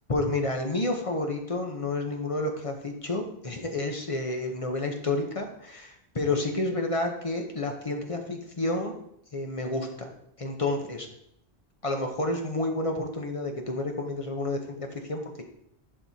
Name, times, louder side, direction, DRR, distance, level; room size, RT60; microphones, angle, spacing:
voice 1, 0.1-8.9 9.3-10.1 10.4-11.1 11.8-15.4, left 2 dB, 35° left, 3 dB, 0.8 m, -30 dB
10.5 x 4.7 x 2.8 m, 0.74 s
omnidirectional pair, 1.2 m